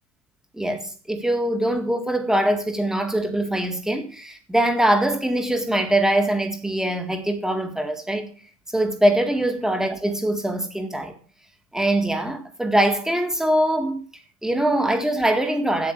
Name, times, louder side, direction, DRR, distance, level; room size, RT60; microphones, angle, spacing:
voice 1, 0.5-8.3 8.7-11.2 11.7-14.0 14.4-15.9, right 1 dB, 5° right, 1.8 m, -22 dB
8.3 x 8.3 x 9.1 m
supercardioid pair, 140°, 18 cm